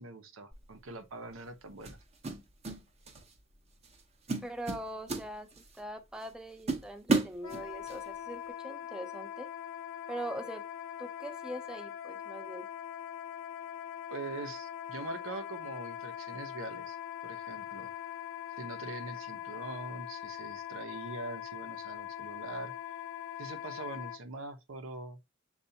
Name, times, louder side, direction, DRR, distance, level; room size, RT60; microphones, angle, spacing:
voice 1, 0.0-2.0 14.1-17.0 17.2-17.9 18.6-22.7 23.4-25.2, right 3 dB, 85° right, 0.8 m, -43 dB
sound 1, 0.5-0.8 1.9-2.8 3.1-3.4 3.8-4.0 4.3-5.8 6.2-6.3 6.7-8.0, right 3 dB, 35° right, 0.7 m, -33 dB
voice 2, 4.4-5.5 5.7-9.5 10.1-10.6 11.0-12.7, right 1 dB, 5° right, 0.4 m, -42 dB
Wind instrument woodwind instrument, 7.4-24.2, left 10 dB, 65° left, 0.8 m, -42 dB
6.8 x 2.4 x 2.7 m
head